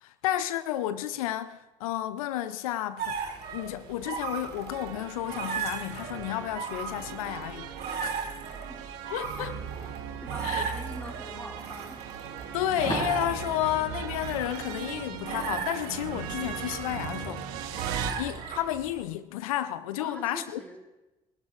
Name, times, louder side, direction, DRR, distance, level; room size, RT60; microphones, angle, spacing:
voice 1, 0.0-3.2 3.5-8.1 9.1-9.5 10.4-10.6 12.5-17.4 18.2-20.6, left 12 dB, 90° left, 0.4 m, -32 dB
sound 1, 3.0-19.0, right 6 dB, 65° right, 2.4 m, -37 dB
sound 2, 4.7-18.1, right 8 dB, 85° right, 1.0 m, -39 dB
voice 2, 9.4-9.7 10.2-12.0 18.0-18.2 20.0-20.8, equal, 10° left, 5.4 m, -43 dB
sound 3, 12.8-15.5, left 1 dB, 25° left, 5.9 m, -38 dB
29.5 x 12.5 x 2.4 m
hypercardioid pair, 50°, 18 cm